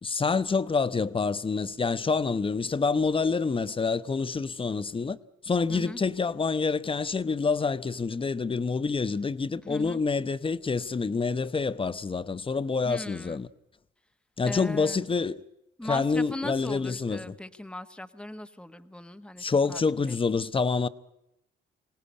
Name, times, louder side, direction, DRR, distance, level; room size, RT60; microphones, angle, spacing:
voice 1, 0.0-5.2 5.4-13.5 14.4-15.4 15.9-17.3 19.4-20.9, left 4 dB, 25° left, 0.9 m, -27 dB
voice 2, 5.7-6.0 9.6-10.0 12.8-13.4 14.4-15.0 15.8-20.2, left 1 dB, 5° left, 1.3 m, -39 dB
24.5 x 18.0 x 9.8 m
cardioid pair, 90°, 20 cm